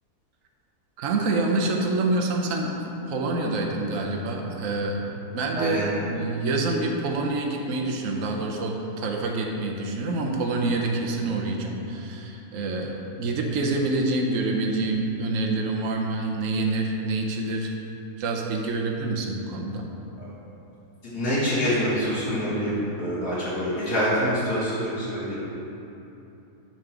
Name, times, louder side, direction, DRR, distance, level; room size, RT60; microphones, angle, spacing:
voice 1, 1.0-5.8 6.1-17.7 18.2-19.9, right 2 dB, 60° right, 1 dB, 1.1 m, -27 dB
voice 2, 5.5-5.9 20.2-20.3 21.1-25.5, equal, 80° left, -10 dB, 2.4 m, -26 dB
10.0 x 3.8 x 5.9 m, 2.9 s
omnidirectional pair, 1.7 m